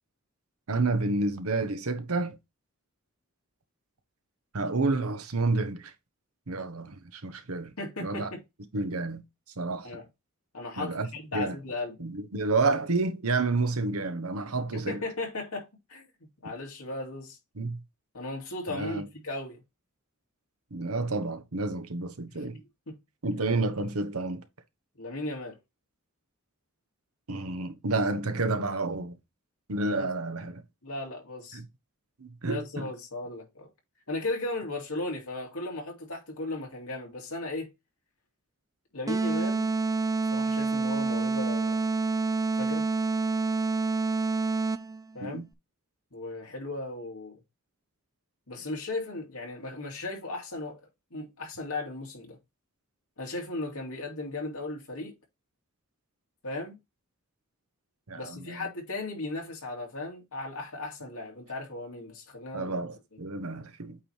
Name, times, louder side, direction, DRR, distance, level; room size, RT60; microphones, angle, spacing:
voice 1, 0.7-2.4 4.5-5.9 6.5-7.7 8.0-8.3 8.7-9.2 9.6-9.9 10.8-11.1 11.3-11.6 12.0-15.0 17.6-17.8 18.7-19.1 20.7-22.6 23.2-24.4 27.3-29.2 29.7-30.6 31.5-31.7 32.2-32.9 45.2-45.5 58.1-58.7 62.5-64.0, right 3 dB, 70° right, 1.0 m, -30 dB
voice 2, 7.8-8.4 9.8-10.1 10.5-12.0 14.7-16.0 16.4-17.4 18.1-19.6 22.3-23.0 25.0-25.5 30.0-30.1 30.8-31.6 32.4-33.7 34.1-37.7 38.9-39.7 40.3-41.9 42.6-42.9 45.1-45.4 46.1-47.4 48.5-50.8 51.1-52.4 53.2-55.1 56.4-56.8 58.1-62.8, left 2 dB, 70° left, 2.4 m, -36 dB
sound 1, 39.1-45.0, right 3 dB, 15° right, 0.4 m, -27 dB
8.5 x 3.3 x 4.4 m
head